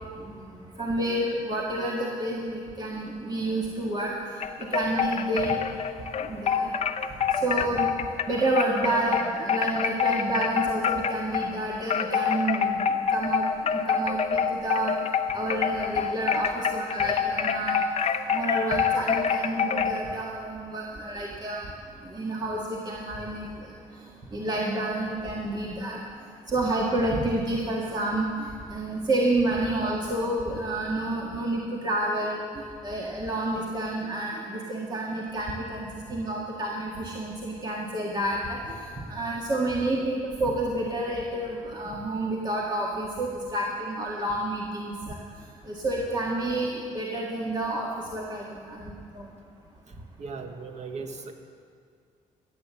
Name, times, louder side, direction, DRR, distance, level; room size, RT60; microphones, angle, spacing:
voice 1, 0.8-4.1 4.7-5.6 6.2-6.7 7.4-7.9 8.3-15.0 15.3-17.8 18.3-21.7 22.0-23.5 24.3-26.0 26.5-38.8 39.1-45.2 45.7-49.3, right 1 dB, 30° right, -3 dB, 1.7 m, -29 dB
sound 1, 4.4-11.6 11.9-20.0, left 7 dB, 50° left, 0.8 m, -26 dB
voice 2, 50.2-51.3, right 4 dB, 55° right, 6 dB, 1.4 m, -37 dB
14.0 x 8.5 x 7.3 m, 2.2 s
supercardioid pair, 75°, 14 cm